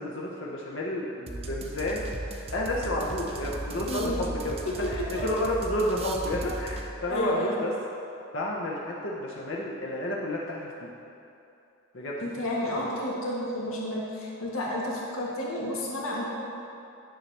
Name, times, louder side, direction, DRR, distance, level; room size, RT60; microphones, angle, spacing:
voice 1, 0.0-2.1 2.5-4.6 4.9-7.7 8.3-10.9 11.9-12.2 12.6-13.0, left 1 dB, 60° left, -4 dB, 0.8 m, -31 dB
sound 1, 1.3-7.1, right 2 dB, 30° right, 0.5 m, -37 dB
voice 2, 3.8-4.2 4.8-4.9 5.1-5.2 7.1-7.5 12.2-16.2, left 1 dB, 80° left, -4 dB, 1.6 m, -31 dB
10.0 x 6.4 x 3.3 m, 2.8 s
head